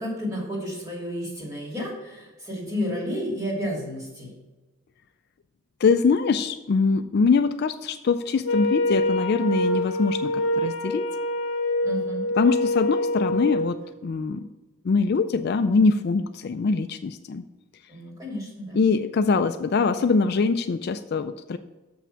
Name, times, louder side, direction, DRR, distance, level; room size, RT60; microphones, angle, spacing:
voice 1, 0.0-4.3 11.8-12.2 17.9-18.8, equal, 15° right, -4 dB, 2.7 m, -31 dB
voice 2, 5.8-11.1 12.4-13.8 14.0-14.4 14.8-17.4 18.7-21.6, left 4 dB, 50° left, 10 dB, 0.3 m, -23 dB
Wind instrument woodwind instrument, 8.4-13.7, left 1 dB, 65° left, 0.9 m, -25 dB
7.1 x 5.9 x 5.6 m, 1.1 s
head